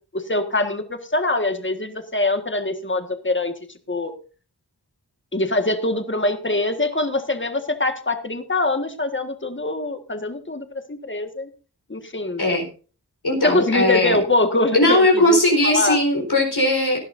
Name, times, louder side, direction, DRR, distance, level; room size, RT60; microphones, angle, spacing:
voice 1, 0.1-3.5 3.9-4.1 5.3-11.5 11.9-12.4 13.4-16.0, left 2 dB, 30° left, 7 dB, 1.7 m, -23 dB
voice 2, 13.2-14.2 14.7-17.0, left 1 dB, 75° left, 1 dB, 4.3 m, -18 dB
17.5 x 11.5 x 2.6 m, 0.37 s
wide cardioid pair, 45°, 39 cm